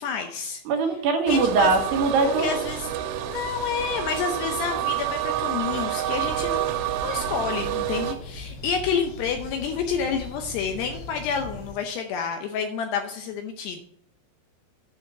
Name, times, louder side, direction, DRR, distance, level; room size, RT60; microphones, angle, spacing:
voice 1, 0.0-0.6 1.3-1.7 2.3-2.9 3.3-13.8, left 6 dB, 80° left, 5 dB, 2.5 m, -29 dB
voice 2, 0.7-2.7, right 4 dB, 70° right, 4 dB, 2.9 m, -22 dB
sound 1, 1.3-8.1, right 12 dB, 90° right, 3.5 m, -29 dB
sound 2, 6.2-11.7, left 2 dB, 55° left, 4.1 m, -40 dB
8.9 x 6.3 x 6.7 m, 0.73 s
omnidirectional pair, 5.5 m